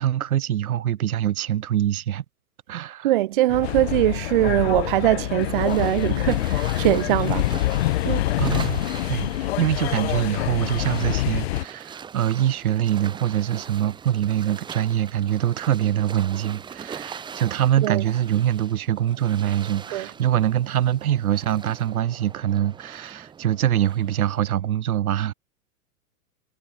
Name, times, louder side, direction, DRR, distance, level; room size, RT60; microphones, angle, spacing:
voice 1, 0.0-2.2 2.7-3.1 4.5-4.6 8.4-25.3, right 11 dB, 85° right, 4.2 m, -24 dB
voice 2, 3.0-7.5 8.0-8.2 17.8-18.0 19.9-20.1, right 15 dB, 40° right, 0.5 m, -22 dB
sound 1, 3.5-11.6, left 16 dB, 50° left, 0.9 m, -25 dB
sound 2, 5.4-24.5, right 7 dB, 10° right, 2.7 m, -41 dB
supercardioid pair, 170°, 42 cm